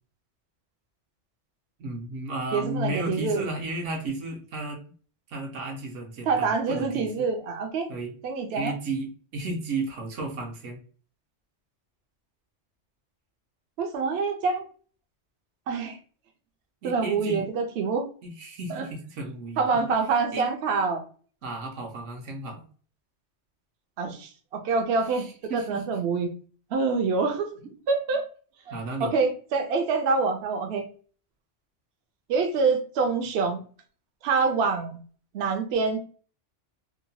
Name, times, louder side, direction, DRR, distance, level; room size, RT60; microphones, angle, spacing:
voice 1, 1.8-4.8 5.3-7.3 7.9-8.1 8.6-10.8 16.8-17.5 18.2-19.8 20.3-20.5 21.4-22.6 25.1-25.8 28.7-29.1, right 2 dB, 80° right, 2 dB, 1.0 m, -34 dB
voice 2, 2.5-3.4 6.3-7.9 8.2-8.7 13.8-14.7 15.7-16.0 16.8-18.0 18.7-18.8 19.6-21.0 24.0-26.3 26.7-27.6 27.9-28.2 29.0-30.8 32.3-33.6 34.2-35.0 35.3-36.0, right 4 dB, 65° right, 3 dB, 0.7 m, -26 dB
2.8 x 2.2 x 2.6 m, 0.41 s
omnidirectional pair, 1.3 m